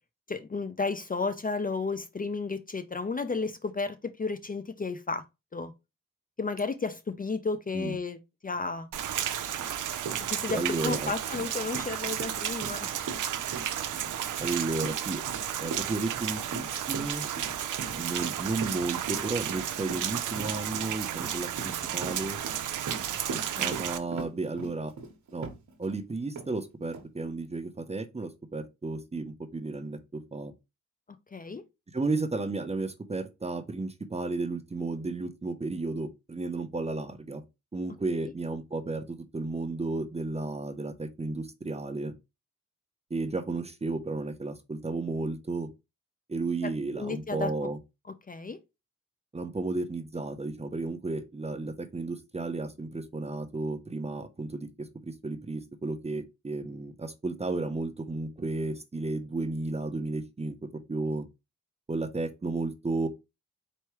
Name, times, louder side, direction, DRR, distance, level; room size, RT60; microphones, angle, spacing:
voice 1, 0.3-5.2 5.5-5.7 6.4-8.9 10.3-12.9 23.6-23.8 31.3-31.6 47.0-47.7 48.3-48.6, left 4 dB, 30° left, 0.5 m, -33 dB
Rain, 8.9-24.0, right 10 dB, 90° right, 0.6 m, -33 dB
Run, 9.6-9.7 10.0-26.0 26.3-26.5 26.9-27.1, right 4 dB, 70° right, 1.1 m, -41 dB
voice 2, 10.5-11.1 14.4-15.2 15.6-17.3 18.0-22.4 23.3-24.9 25.3-25.5 25.8-30.5 31.9-37.4 37.7-42.1 43.1-45.7 46.3-47.8 49.3-60.6 60.9-61.3 61.9-63.1, right 3 dB, 20° right, 0.7 m, -33 dB
4.5 x 3.1 x 3.0 m
cardioid pair, 75°, 30 cm